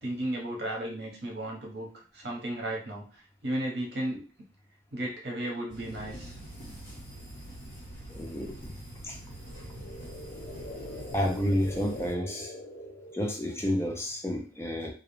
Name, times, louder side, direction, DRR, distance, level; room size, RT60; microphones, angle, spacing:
voice 1, 0.0-4.2 4.9-6.4 9.6-9.7, right 1 dB, 65° right, -1 dB, 0.8 m, -34 dB
sound 1, 5.7-12.1, right 1 dB, 40° left, 1.2 m, -44 dB
voice 2, 8.1-8.7 9.0-9.2 11.1-12.5 13.1-14.9, equal, 15° left, 0 dB, 0.4 m, -30 dB
sound 2, 9.3-13.7, left 1 dB, 75° left, 0.5 m, -43 dB
2.4 x 2.0 x 3.0 m, 0.38 s
head